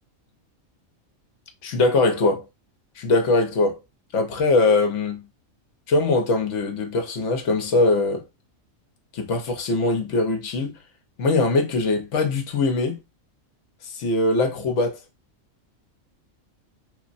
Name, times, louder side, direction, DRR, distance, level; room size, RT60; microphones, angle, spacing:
voice 1, 1.6-2.4 3.0-3.8 4.1-5.2 5.9-8.2 9.1-10.7 11.2-13.0 13.8-15.0, left 3 dB, 65° left, 1.0 m, -21 dB
3.3 x 2.1 x 2.5 m
omnidirectional pair, 1.4 m